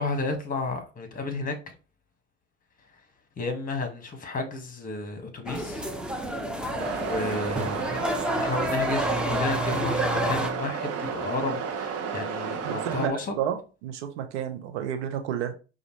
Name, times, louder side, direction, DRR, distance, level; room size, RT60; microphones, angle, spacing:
voice 1, 0.0-1.8 3.4-5.9 6.7-8.0 8.3-13.3, left 3 dB, 25° left, 1.4 m, -32 dB
sound 1, 5.5-10.5, equal, 5° right, 0.7 m, -29 dB
sound 2, 6.8-13.1, right 6 dB, 45° right, 0.9 m, -32 dB
voice 2, 12.6-15.5, right 9 dB, 80° right, 0.8 m, -31 dB
5.0 x 2.5 x 3.1 m
hypercardioid pair, 75°, 34 cm